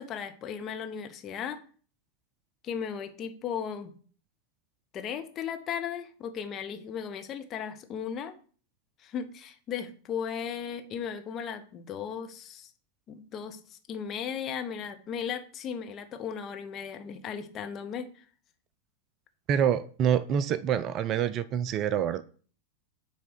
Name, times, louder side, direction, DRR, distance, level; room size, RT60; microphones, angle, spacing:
voice 1, 0.0-1.6 2.6-3.9 4.9-8.3 9.0-12.7 13.1-18.1, left 7 dB, 30° left, 1.0 m, -36 dB
voice 2, 19.5-22.2, right 9 dB, 35° right, 0.4 m, -26 dB
9.0 x 3.4 x 4.8 m
figure-of-eight pair, 90°, 0 cm